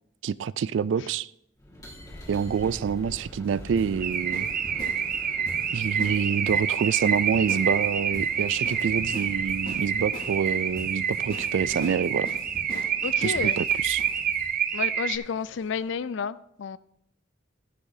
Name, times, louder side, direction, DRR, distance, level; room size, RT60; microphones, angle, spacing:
voice 1, 0.2-1.3 2.3-4.5 5.7-12.3 13.2-14.0, right 7 dB, 80° right, 0.3 m, -27 dB
sound 1, 1.6-16.0, equal, 20° left, 2.2 m, -46 dB
sound 2, 2.4-14.4, left 1 dB, 55° left, 2.5 m, -43 dB
Car / Alarm, 4.0-15.2, right 7 dB, 50° right, 0.7 m, -27 dB
voice 2, 13.0-13.6 14.7-16.8, left 6 dB, 75° left, 0.4 m, -31 dB
14.0 x 9.8 x 2.7 m
head